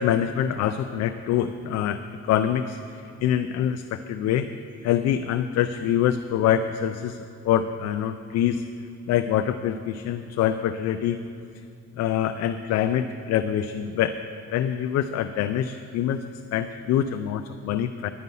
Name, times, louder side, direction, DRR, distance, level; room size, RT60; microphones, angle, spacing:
voice 1, 0.0-2.0 2.3-2.8 3.2-4.5 4.8-8.6 9.1-11.2 12.0-14.2 14.5-16.2 16.5-18.1, left 10 dB, 60° left, 8 dB, 0.4 m, -25 dB
10.5 x 9.5 x 5.4 m, 2.4 s
cardioid pair, 150°, 29 cm